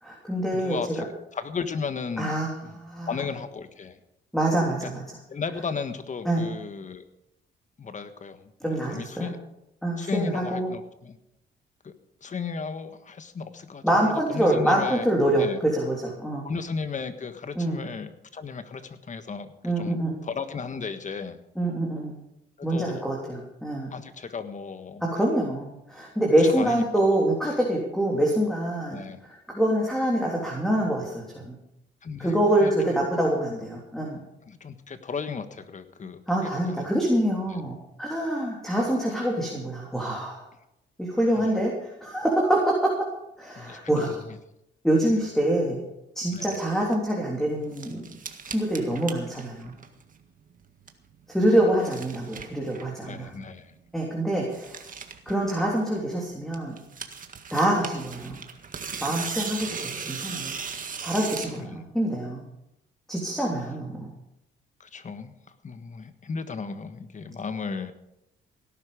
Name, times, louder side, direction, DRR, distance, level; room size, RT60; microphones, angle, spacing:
voice 1, 0.0-0.8 2.2-3.1 4.3-5.0 6.2-6.4 8.6-9.3 9.8-10.7 13.8-16.5 17.5-17.8 19.6-20.1 21.5-22.1 22.6-23.9 25.1-29.0 29.2-31.6 32.2-34.2 36.3-40.4 41.0-43.1 43.4-44.2 44.8-45.8 46.1-48.1 48.5-49.7 51.3-53.3 53.9-54.8 55.2-56.8 57.5-58.4 59.0-60.6 61.0-62.4 63.1-64.1, right 1 dB, ahead, -2 dB, 3.4 m, -25 dB
voice 2, 0.5-1.0 1.3-2.7 3.1-4.0 4.7-4.9 5.3-7.0 7.8-9.4 10.0-11.2 11.8-11.9 12.2-15.1 15.4-15.6 16.4-19.5 19.8-21.4 22.6-23.0 23.9-25.1 26.4-27.2 28.9-29.2 32.0-33.1 34.4-36.8 37.5-37.6 41.3-41.5 43.6-43.8 44.1-44.4 46.3-46.5 53.0-53.7 60.7-60.8 61.6-61.8 64.8-65.3 65.6-67.9, left 5 dB, 40° left, 10 dB, 1.5 m, -35 dB
sound 1, 46.3-46.9 47.4-50.2 50.5-51.1 51.5-53.0 53.4-53.5 53.7-53.8 54.0-54.1 54.4-56.1 56.5-61.6, right 6 dB, 40° right, 1.8 m, -38 dB
17.5 x 11.5 x 5.2 m, 0.85 s
cardioid pair, 90°, 20 cm